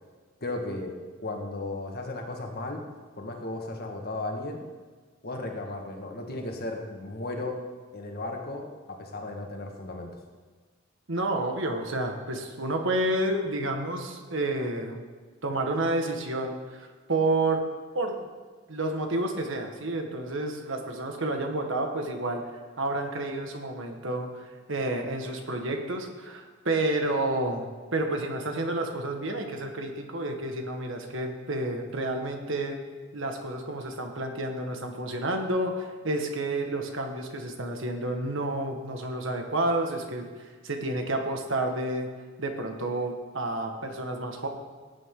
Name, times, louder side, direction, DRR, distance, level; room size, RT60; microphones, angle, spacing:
voice 1, 0.4-0.9 1.2-2.8 3.2-4.6 5.2-7.6 7.9-10.1, left 2 dB, 50° left, 2 dB, 1.8 m, -35 dB
voice 2, 11.1-15.0 15.4-17.7 17.9-18.2 18.7-22.4 22.8-32.8 33.1-40.3 40.6-42.1 42.4-44.5, right 2 dB, 70° right, 3 dB, 1.7 m, -30 dB
18.0 x 9.1 x 3.9 m, 1.4 s
head